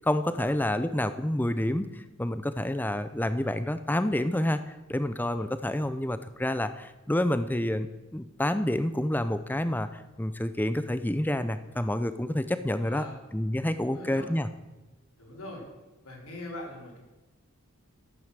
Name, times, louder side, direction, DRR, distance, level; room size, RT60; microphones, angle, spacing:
voice 1, 0.0-4.6 4.9-13.1 13.3-14.5, left 1 dB, 10° left, 12 dB, 0.5 m, -28 dB
voice 2, 12.7-13.1 13.8-14.3 15.2-15.6 16.0-17.0, left 1 dB, 85° left, -2 dB, 4.1 m, -42 dB
12.5 x 9.3 x 6.6 m, 1.2 s
head